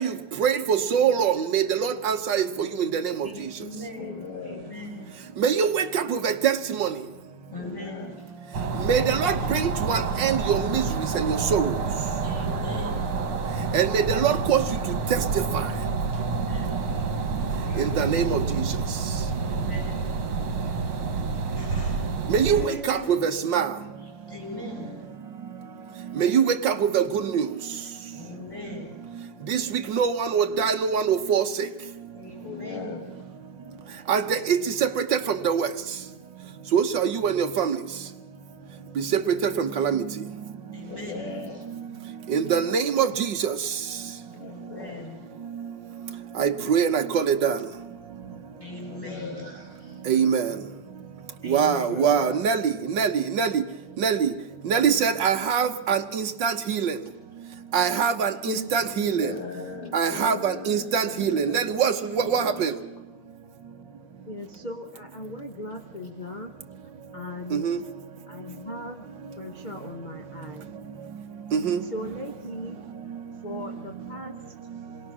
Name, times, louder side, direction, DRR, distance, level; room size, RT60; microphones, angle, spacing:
voice 1, 0.4-2.4 2.9-3.0 5.4-6.5 6.8-6.9 8.9-10.8 11.2-11.6 13.7-14.6 18.0-18.4 22.3-22.6 22.9-23.7 26.2-27.0 27.3-27.4 29.5-29.6 29.9-31.4 34.1-34.6 35.5-35.7 36.7-37.7 39.6-40.0 42.3-43.1 46.4-47.5 50.1-50.4 51.5-52.6 53.0-53.1 53.4-53.5 54.0-54.3 54.7-56.9 57.7-59.3 59.9-61.9 62.3-62.7 67.6-67.8 71.5-71.8, right 7 dB, 60° right, 1.7 m, -23 dB
voice 2, 3.2-5.1 7.5-8.1 12.2-13.2 16.2-16.9 19.4-20.1 21.5-22.1 22.5-23.1 24.3-24.9 28.1-29.0 32.1-33.0 38.5-38.6 40.7-41.3 44.4-45.2 48.5-50.1 51.4-51.9, left 1 dB, 10° left, 6.8 m, -40 dB
voice 3, 4.0-4.7 7.6-8.2 12.4-13.2 17.5-18.0 19.5-20.0 24.5-25.2 28.3-29.0 32.4-33.1 40.8-41.6 44.3-45.1 48.8-49.6 51.5-53.4 59.0-62.8, left 5 dB, 85° left, 2.8 m, -40 dB
sound 1, 8.5-22.7, right 4 dB, 75° right, 2.6 m, -28 dB
voice 4, 58.4-59.7 61.0-61.2 64.2-66.5 67.1-67.8 68.3-69.0 69.4-70.7 71.8-72.8 73.4-74.3, left 1 dB, 25° left, 1.2 m, -38 dB
28.0 x 21.5 x 6.2 m
omnidirectional pair, 2.3 m